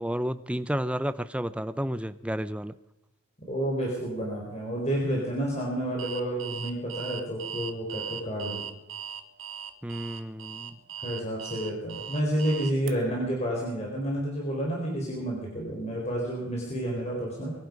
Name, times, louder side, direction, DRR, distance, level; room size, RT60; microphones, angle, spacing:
voice 1, 0.0-2.7 9.8-10.8, equal, 5° right, 13 dB, 0.6 m, -31 dB
voice 2, 3.5-8.6 11.0-17.5, right 1 dB, 35° left, -2 dB, 4.4 m, -30 dB
Alarm, 6.0-12.9, right 8 dB, 75° right, 1.3 m, -39 dB
22.5 x 12.0 x 5.3 m, 0.92 s
head